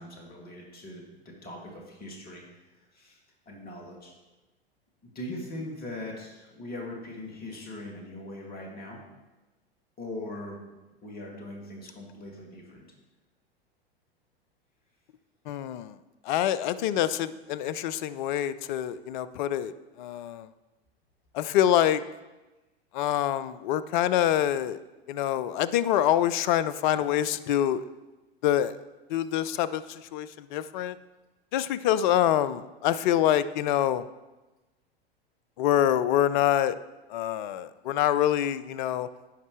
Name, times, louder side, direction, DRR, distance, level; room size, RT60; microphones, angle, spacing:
voice 1, 0.0-3.2 3.5-4.1 5.0-9.0 10.0-10.6 11.0-12.9, left 1 dB, 30° left, -1 dB, 2.4 m, -41 dB
voice 2, 15.5-16.0 16.3-20.5 21.3-22.0 22.9-24.8 25.1-27.8 28.4-28.8 29.1-31.0 31.5-34.1 35.6-36.8 37.1-39.1, left 11 dB, 50° left, 16 dB, 0.5 m, -26 dB
16.0 x 5.4 x 3.2 m, 1.1 s
figure-of-eight pair, 90°, 31 cm